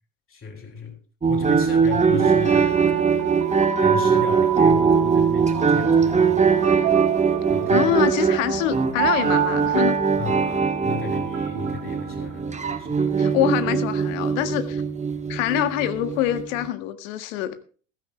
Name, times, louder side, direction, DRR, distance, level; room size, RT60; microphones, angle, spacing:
voice 1, 0.3-1.0 1.3-3.4 3.8-7.9 10.2-13.2, left 5 dB, 30° left, 7.2 m, -35 dB
sound 1, 1.2-16.7, right 5 dB, 15° right, 1.5 m, -21 dB
sound 2, 1.7-12.8, right 9 dB, 75° right, 2.0 m, -29 dB
voice 2, 7.7-10.0 13.2-14.8 15.3-17.6, left 13 dB, 70° left, 1.8 m, -25 dB
15.5 x 13.5 x 3.3 m
hypercardioid pair, 80°, 40 cm